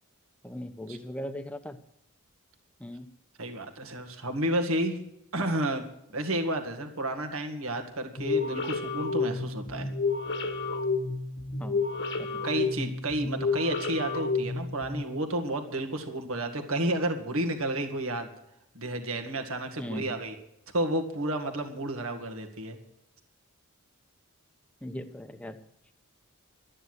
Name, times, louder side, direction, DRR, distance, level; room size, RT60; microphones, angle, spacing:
voice 1, 0.4-1.8 2.8-3.1 11.6-11.8 12.2-12.4 19.8-20.1 24.8-25.6, equal, 5° left, 9 dB, 0.9 m, -38 dB
voice 2, 3.4-5.0 5.3-5.8 6.1-9.9 12.4-18.3 18.7-20.4 20.7-22.8, right 1 dB, 65° right, 5 dB, 2.0 m, -31 dB
sound 1, 8.2-15.1, left 4 dB, 55° left, 1.4 m, -30 dB
13.0 x 9.8 x 8.0 m, 0.81 s
head